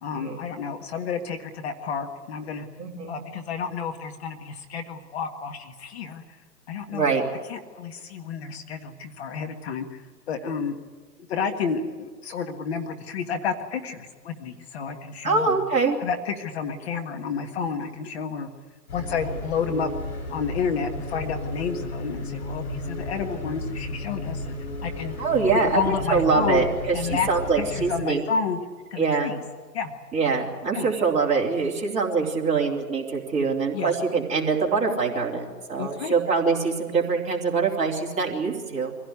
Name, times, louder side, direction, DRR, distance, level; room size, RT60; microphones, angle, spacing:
voice 1, 0.0-2.7 3.1-6.2 6.7-7.1 7.5-10.7 11.3-15.6 16.0-18.5 18.9-19.9 20.3-24.6 24.8-25.1 25.5-26.6 26.9-27.3 27.6-28.6 28.9-29.4 29.7-29.9 30.7-30.9 33.7-33.9 35.8-36.1, left 6 dB, 40° left, 5 dB, 1.7 m, -30 dB
voice 2, 2.8-3.1 6.9-7.2 15.2-16.0 25.2-28.2 29.0-29.4 30.1-39.0, right 4 dB, 15° right, -3 dB, 3.3 m, -24 dB
sound 1, 18.9-28.0, left 2 dB, 70° left, 5.7 m, -33 dB
24.5 x 16.5 x 9.7 m, 1.5 s
hypercardioid pair, 135°, 49 cm